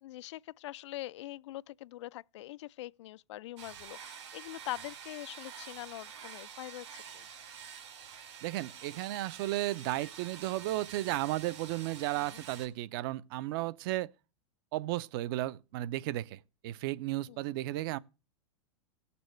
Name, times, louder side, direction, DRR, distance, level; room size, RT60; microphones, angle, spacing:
voice 1, 0.0-7.3 12.1-12.4 17.3-17.4, left 16 dB, 70° left, 0.4 m, -43 dB
sound 1, 3.6-12.7, right 7 dB, 70° right, 3.4 m, -48 dB
voice 2, 8.4-14.1 14.7-18.0, right 16 dB, 50° right, 0.6 m, -34 dB
17.5 x 6.9 x 3.1 m
supercardioid pair, 140°, 15 cm